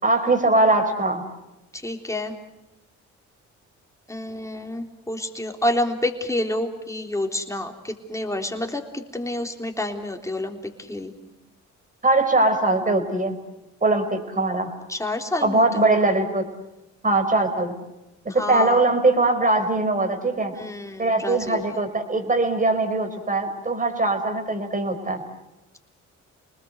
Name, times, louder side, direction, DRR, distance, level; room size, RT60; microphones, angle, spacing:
voice 1, 0.0-1.2 12.0-13.4 13.8-14.7 15.4-16.4 17.0-17.7 18.3-20.5 21.0-25.2, right 2 dB, 25° right, 6 dB, 5.1 m, -21 dB
voice 2, 1.7-2.4 4.1-11.1 14.9-16.0 18.3-18.9 20.5-21.8, left 1 dB, 10° left, 3 dB, 3.7 m, -29 dB
30.0 x 20.0 x 8.0 m, 0.95 s
cardioid pair, 90°, 30 cm